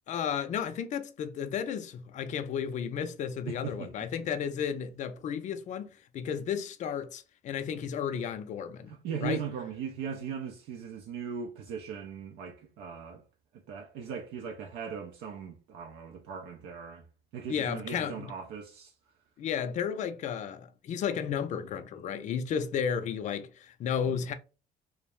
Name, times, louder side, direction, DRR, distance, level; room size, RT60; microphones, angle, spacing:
voice 1, 0.1-8.9 9.2-9.4 17.5-18.3 19.4-24.3, left 7 dB, 45° left, 0.4 m, -33 dB
voice 2, 3.5-4.1 8.9-13.2 13.5-17.1 17.3-18.9, right 6 dB, 85° right, 0.5 m, -39 dB
2.3 x 2.0 x 2.9 m
cardioid pair, 110°, 17 cm